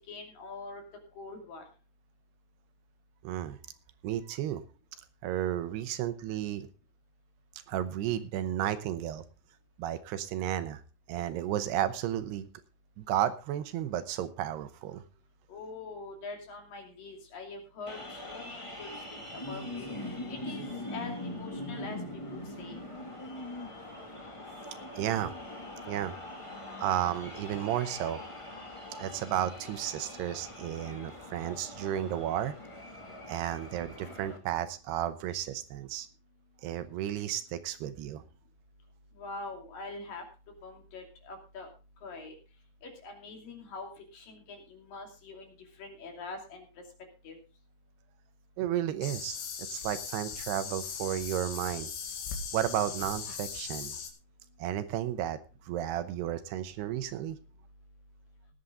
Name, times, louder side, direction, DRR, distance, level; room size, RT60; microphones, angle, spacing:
voice 1, 0.1-0.8 1.2-1.6 15.5-22.0 22.3-22.8 39.2-40.2 40.6-41.7 42.0-42.4 42.8-46.7 47.2-47.4, left 3 dB, 55° left, 2 dB, 4.2 m, -44 dB
voice 2, 3.2-3.6 4.0-4.6 5.2-6.7 7.7-9.2 9.8-10.8 11.1-12.5 13.0-15.0 25.0-25.3 25.9-26.2 26.8-28.2 29.0-32.5 33.3-36.1 36.6-38.2 48.6-49.4 49.7-51.9 52.5-53.9 54.6-55.4 55.7-57.4, right 11 dB, 80° right, 12 dB, 2.9 m, -33 dB
sound 1, 17.9-34.4, left 1 dB, 15° left, 1.3 m, -42 dB
sound 2, 49.0-54.1, left 6 dB, 75° left, 4.1 m, -39 dB
19.0 x 8.5 x 3.8 m, 0.33 s
omnidirectional pair, 4.8 m